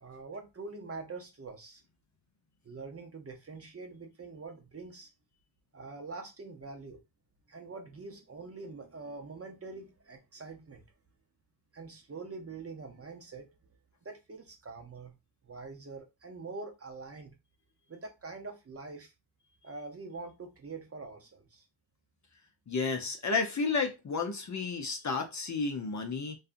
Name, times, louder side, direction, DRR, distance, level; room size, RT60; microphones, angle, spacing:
voice 1, 0.0-1.8 2.6-5.1 5.7-7.0 7.5-10.9 11.7-13.5 14.0-15.1 15.4-17.4 17.9-19.1 19.6-21.6, right 3 dB, 30° right, 0.6 m, -44 dB
voice 2, 22.7-26.4, left 4 dB, 40° left, 0.6 m, -32 dB
2.7 x 2.3 x 2.5 m
cardioid pair, 90°, 48 cm